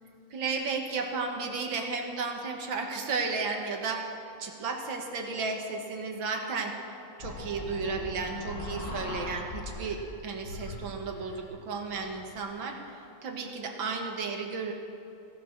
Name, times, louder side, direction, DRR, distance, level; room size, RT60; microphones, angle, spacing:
voice 1, 0.3-4.0 4.4-6.7 7.2-12.8 13.2-14.7, right 4 dB, 85° right, 3 dB, 2.2 m, -33 dB
sound 1, 7.2-10.1 10.3-12.4, left 2 dB, 65° left, 2.9 m, -40 dB
16.5 x 11.5 x 6.5 m, 2.8 s
omnidirectional pair, 2.1 m